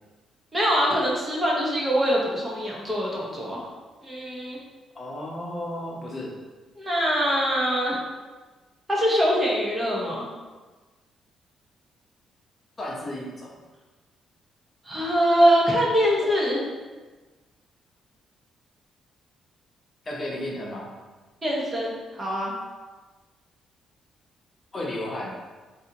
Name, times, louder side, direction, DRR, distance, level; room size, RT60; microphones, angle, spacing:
voice 1, 0.5-3.6 4.0-4.6 6.8-8.0 8.9-10.3 14.8-16.7 21.4-22.5, equal, 25° right, -4 dB, 0.9 m, -23 dB
voice 2, 4.9-6.3 12.8-13.5 20.0-20.9 24.7-25.3, left 1 dB, 30° left, -4 dB, 0.8 m, -33 dB
3.9 x 2.7 x 2.9 m, 1.3 s
cardioid pair, 90°, 0 cm